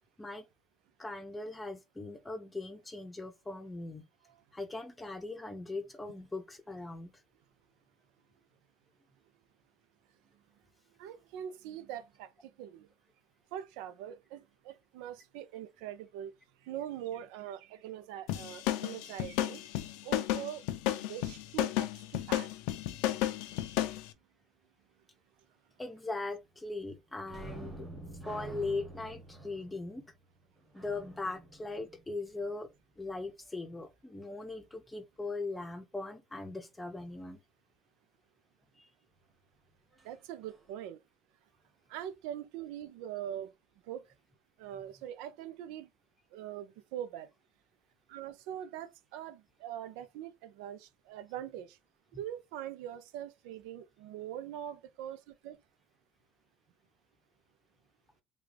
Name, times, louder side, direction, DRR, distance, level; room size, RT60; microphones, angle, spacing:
voice 1, 1.0-4.0 4.5-7.1 25.8-27.8 28.3-30.0 30.7-32.7 33.0-37.4 38.8-38.9 52.1-52.2, left 2 dB, 10° left, 0.7 m, -40 dB
voice 2, 11.0-12.3 12.6-12.9 13.5-16.3 16.6-19.6 20.0-20.6 21.0-21.9 22.3-22.5 40.0-41.0 41.9-43.5 43.9-44.0 44.6-45.9 46.3-47.3 48.1-51.8 52.1-55.2 55.4-55.6, right 11 dB, 80° right, 0.6 m, -42 dB
sound 1, 18.3-24.0, left 13 dB, 75° left, 0.5 m, -32 dB
sound 2, 27.2-32.6 40.0-40.1 40.5-40.7, right 1 dB, 15° right, 1.3 m, -48 dB
3.6 x 2.3 x 3.2 m
cardioid pair, 130°, 0 cm